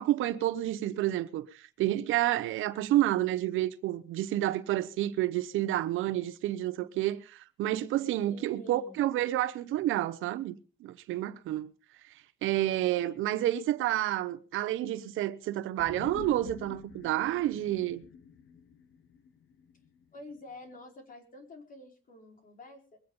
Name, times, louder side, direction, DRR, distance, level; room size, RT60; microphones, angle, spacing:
voice 1, 0.0-11.7 12.4-18.0, right 14 dB, 85° right, 0.9 m, -30 dB
voice 2, 8.3-9.0 20.1-23.0, left 2 dB, 45° left, 4.7 m, -48 dB
sound 1, 15.8-20.4 20.7-20.8, left 7 dB, 80° left, 1.3 m, -48 dB
21.5 x 8.8 x 5.4 m
cardioid pair, 90°, 20 cm